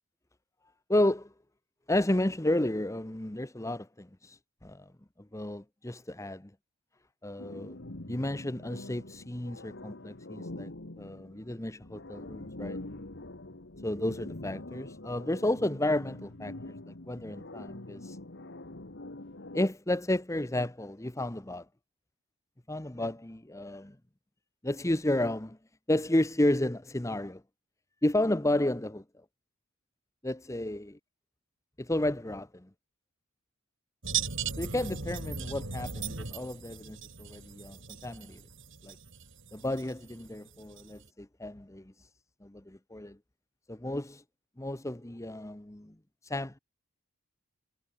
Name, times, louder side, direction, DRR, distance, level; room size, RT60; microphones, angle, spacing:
voice 1, 0.9-1.3 1.9-4.9 5.3-6.5 7.2-7.8 8.1-10.7 11.0-12.8 13.8-16.5 16.9-18.2 19.5-21.6 22.7-23.9 24.6-25.6 25.9-27.4 28.0-29.0 30.2-30.9 31.8-32.7 34.6-38.4 38.8-39.0 39.5-41.9 42.4-43.2 43.7-44.2 44.6-45.9 46.2-46.6, left 1 dB, 15° left, 0.9 m, -32 dB
sound 1, 7.4-19.7, left 2 dB, 50° left, 1.6 m, -44 dB
sound 2, 34.0-41.1, right 6 dB, 55° right, 3.1 m, -38 dB
head